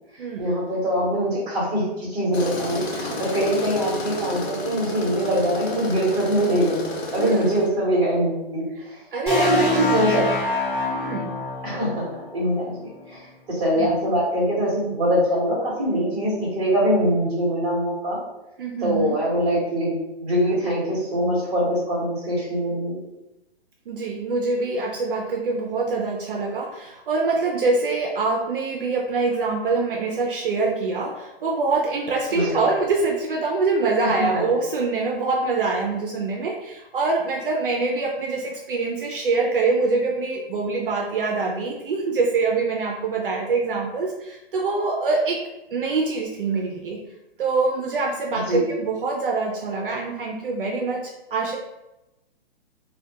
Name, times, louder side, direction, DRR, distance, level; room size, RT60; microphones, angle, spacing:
voice 1, 0.4-6.8 7.1-8.7 9.3-10.3 11.6-12.8 13.1-18.2 18.8-19.9 20.2-23.0 32.3-32.6 34.0-34.4 48.3-48.6, equal, 15° right, -7 dB, 1.0 m, -23 dB
Tools, 2.3-7.7, left 2 dB, 85° left, 0.7 m, -32 dB
voice 2, 9.1-9.7 10.9-11.3 13.8-13.9 18.6-19.2 23.9-45.4 45.7-47.0 47.4-51.6, right 3 dB, 60° right, -1 dB, 0.4 m, -24 dB
sound 1, 9.3-13.1, left 3 dB, 20° left, 1.4 m, -27 dB
2.3 x 2.2 x 2.7 m, 0.97 s
hypercardioid pair, 170°, 31 cm